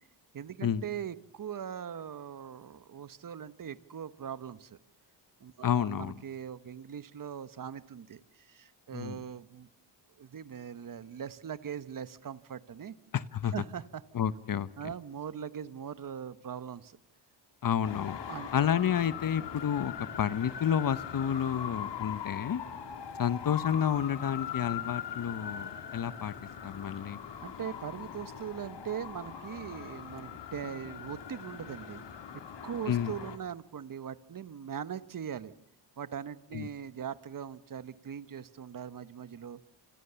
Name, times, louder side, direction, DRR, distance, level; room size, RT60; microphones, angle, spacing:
voice 1, 0.3-4.8 5.4-9.7 10.2-12.9 13.5-14.0 14.8-17.0 18.3-18.7 27.4-32.0 32.6-35.5 36.0-39.6, right 8 dB, 50° right, 15 dB, 1.2 m, -41 dB
voice 2, 5.6-6.2 8.9-9.2 13.1-13.5 14.1-14.9 17.6-18.2 18.5-22.6 23.2-26.3 26.6-27.2 32.9-33.1 36.5-36.7, left 9 dB, 50° left, 16 dB, 1.0 m, -30 dB
Traffic noise roadway noise, 17.8-33.4, left 8 dB, 70° left, 3.3 m, -41 dB
27.5 x 26.5 x 7.0 m, 0.70 s
cardioid pair, 105°, 43 cm